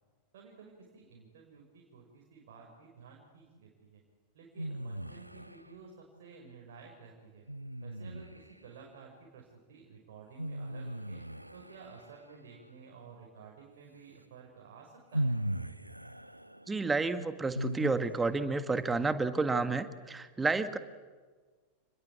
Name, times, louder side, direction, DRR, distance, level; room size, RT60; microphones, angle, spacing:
voice 1, 0.3-4.0 4.3-7.4 7.8-11.2 11.5-15.4, right 5 dB, 55° right, 0 dB, 5.8 m, -53 dB
sound 1, 4.5-5.7 7.5-8.6 10.4-12.3 14.2-14.3 15.1-18.4, right 1 dB, 90° right, 0.9 m, -38 dB
voice 2, 16.7-20.8, right 3 dB, 15° right, 11 dB, 1.8 m, -30 dB
29.5 x 21.0 x 8.6 m, 1.5 s
figure-of-eight pair, 90°, 0 cm